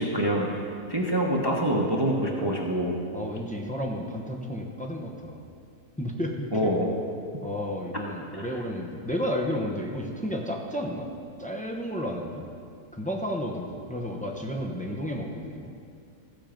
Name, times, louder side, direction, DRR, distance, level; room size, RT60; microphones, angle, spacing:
voice 1, 0.0-2.9 6.5-6.9 8.3-8.5, right 1 dB, 20° right, -1 dB, 0.8 m, -26 dB
voice 2, 3.1-5.4 6.0-6.5 7.4-11.1 11.4-12.5 12.9-15.7, equal, 10° left, 0 dB, 0.4 m, -32 dB
15.0 x 7.3 x 5.2 m, 2.3 s
omnidirectional pair, 1.8 m